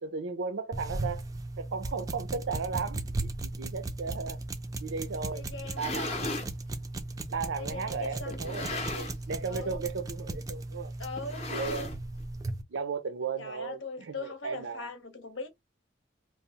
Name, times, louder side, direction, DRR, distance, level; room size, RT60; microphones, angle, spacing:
voice 1, 0.0-1.2 1.6-4.4 4.8-5.4 5.8-6.2 7.3-10.9 11.5-11.9 12.7-14.9, right 5 dB, 85° right, 0.5 m, -35 dB
sound 1, 0.7-12.6, right 2 dB, 20° right, 0.3 m, -37 dB
voice 2, 5.3-6.3 7.6-8.4 9.5-9.8 10.3-10.4 11.0-11.7 13.4-15.5, left 3 dB, 85° left, 0.9 m, -41 dB
sound 2, 5.5-6.5 7.3-7.4 8.3-9.3 9.6-9.9 10.2-10.3 11.2-12.2, left 2 dB, 35° left, 0.6 m, -36 dB
2.7 x 2.0 x 2.8 m
head